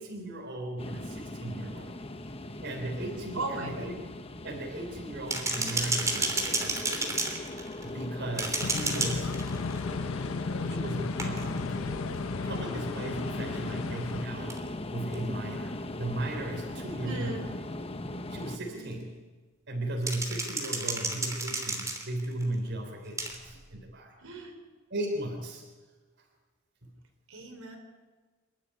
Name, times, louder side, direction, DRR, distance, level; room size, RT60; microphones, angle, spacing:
voice 1, 0.0-2.0 2.6-4.0 4.4-7.0 7.8-9.3 10.5-14.6 14.9-17.6 18.3-19.1 19.7-24.1 24.9-25.7 26.8-26.9, right 1 dB, 55° right, 1 dB, 3.8 m, -36 dB
sound 1, 0.8-18.6, left 2 dB, 30° left, 1.1 m, -39 dB
voice 2, 3.3-3.9 17.0-17.5 18.7-19.0 24.2-24.5 27.3-27.8, right 2 dB, 80° right, 3 dB, 4.6 m, -37 dB
sound 2, 5.3-8.0 8.4-9.8 11.2-11.6 14.5-14.6 15.1-15.2 17.0-17.1 20.1-22.4 23.2-23.4, right 2 dB, 15° right, 3.3 m, -31 dB
sound 3, 8.6-14.3, left 4 dB, 75° left, 0.7 m, -34 dB
27.0 x 12.5 x 9.8 m, 1.4 s
head